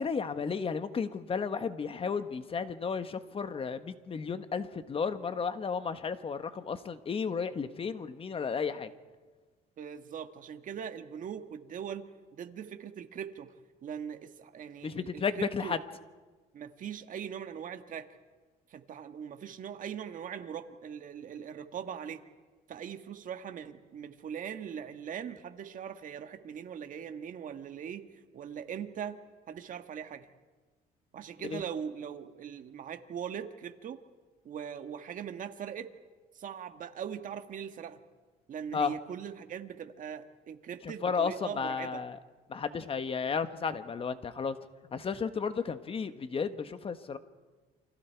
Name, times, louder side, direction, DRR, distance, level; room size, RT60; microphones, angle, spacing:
voice 1, 0.0-8.9 14.8-15.8 31.5-31.6 38.7-38.9 40.8-42.2 42.5-44.6 44.9-47.2, left 5 dB, 35° left, 11 dB, 1.4 m, -33 dB
voice 2, 9.8-13.5 13.8-15.8 16.5-18.1 18.7-22.2 22.7-29.2 29.5-30.3 31.1-34.0 34.4-35.9 36.3-38.0 38.5-42.0, right 8 dB, 50° right, 8 dB, 1.6 m, -41 dB
29.0 x 24.5 x 4.7 m, 1.4 s
cardioid pair, 110°, 17 cm